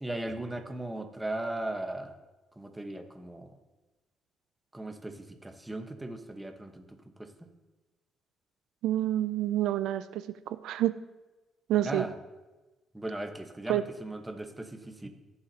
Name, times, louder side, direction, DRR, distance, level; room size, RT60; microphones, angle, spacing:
voice 1, 0.0-2.1 2.5-3.6 4.7-7.5 11.8-12.2 12.9-15.1, right 1 dB, 10° right, 5 dB, 1.2 m, -38 dB
voice 2, 8.8-10.9 11.7-12.0 13.7-13.8, right 13 dB, 85° right, 13 dB, 0.3 m, -28 dB
17.5 x 7.2 x 2.9 m, 1.2 s
cardioid pair, 90°, 0 cm